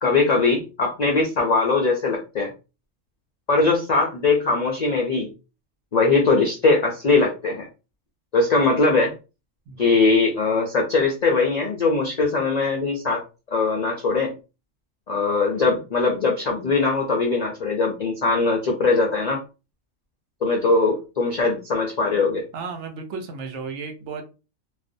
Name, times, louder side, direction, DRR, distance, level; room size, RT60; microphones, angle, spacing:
voice 1, 0.0-2.5 3.5-5.3 5.9-7.7 8.3-9.1 9.8-13.2 13.5-14.3 15.1-19.4 20.4-22.5, left 3 dB, 70° left, 0 dB, 0.4 m, -21 dB
voice 2, 22.5-24.3, right 5 dB, 70° right, 4 dB, 0.9 m, -33 dB
2.4 x 2.0 x 2.5 m, 0.30 s
omnidirectional pair, 1.3 m